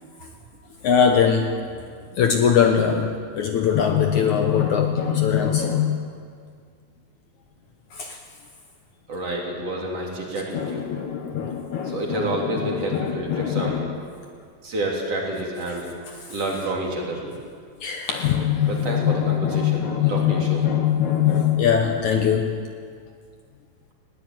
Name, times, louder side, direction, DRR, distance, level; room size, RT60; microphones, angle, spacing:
voice 1, 0.8-1.6 2.2-6.1 7.9-8.2 10.5-14.0 16.2-16.4 17.8-22.6, left 8 dB, 65° left, 5 dB, 2.2 m, -22 dB
voice 2, 9.1-10.9 11.8-13.8 14.6-15.9 16.3-17.4 18.7-19.8 20.1-20.7, right 1 dB, 45° right, -1 dB, 4.2 m, -29 dB
20.0 x 17.0 x 9.2 m, 2.1 s
omnidirectional pair, 4.2 m